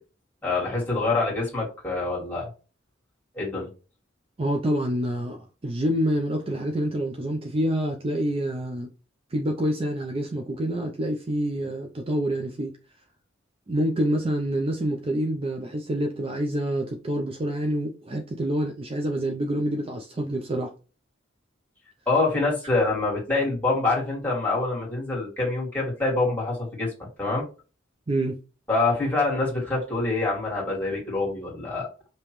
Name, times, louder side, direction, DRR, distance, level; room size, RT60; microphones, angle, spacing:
voice 1, 0.4-2.5 3.3-3.7 22.1-26.9 27.2-27.4 28.7-31.9, left 3 dB, 10° left, 2.2 m, -25 dB
voice 2, 4.4-8.9 9.3-12.7 13.7-20.7 28.1-28.4, right 1 dB, 30° right, 0.5 m, -27 dB
5.2 x 3.0 x 3.1 m
head